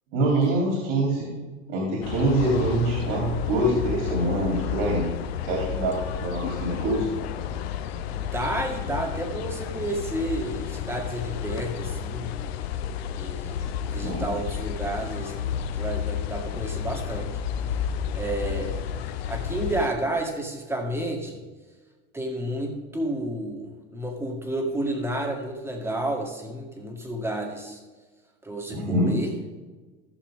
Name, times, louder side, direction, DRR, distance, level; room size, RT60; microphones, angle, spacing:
voice 1, 0.1-1.3 1.7-5.1 5.4-7.1 14.0-14.3 28.7-29.1, right 1 dB, 65° right, -1 dB, 3.4 m, -25 dB
sound 1, 2.0-19.9, left 8 dB, 85° left, 0.8 m, -31 dB
voice 2, 8.1-12.4 13.1-17.4 18.1-21.4 22.1-27.8 28.4-29.3, right 1 dB, 10° right, 1 dB, 1.9 m, -31 dB
15.5 x 6.5 x 3.6 m, 1.3 s
supercardioid pair, 135°, 30 cm